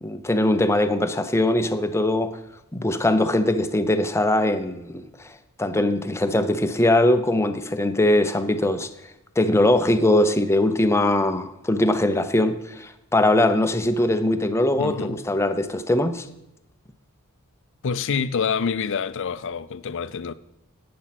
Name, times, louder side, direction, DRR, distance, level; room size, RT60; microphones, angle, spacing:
voice 1, 0.0-2.4 2.7-5.3 5.6-8.9 9.4-16.3, left 1 dB, 15° left, 0.7 m, -21 dB
voice 2, 14.8-15.2 17.8-20.3, left 6 dB, 60° left, 0.5 m, -27 dB
11.0 x 8.6 x 5.9 m
head